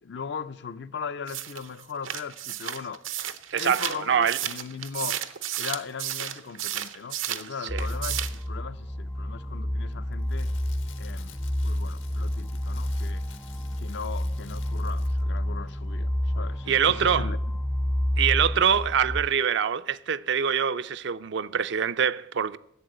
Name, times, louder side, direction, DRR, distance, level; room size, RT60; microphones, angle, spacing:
voice 1, 0.0-3.0 3.6-5.2 5.6-10.6 11.0-13.3 13.8-17.4, left 6 dB, 60° left, 0.5 m, -38 dB
sound 1, 1.3-7.5 7.8-8.4, right 11 dB, 85° right, 0.8 m, -33 dB
voice 2, 3.5-4.4 7.7-7.9 16.7-17.3 18.2-22.6, right 7 dB, 65° right, 0.4 m, -24 dB
sound 2, 7.7-19.2, left 1 dB, 5° left, 0.5 m, -29 dB
Crackle, 10.0-15.4 15.7-15.9, left 7 dB, 80° left, 1.3 m, -52 dB
11.5 x 8.0 x 7.8 m
head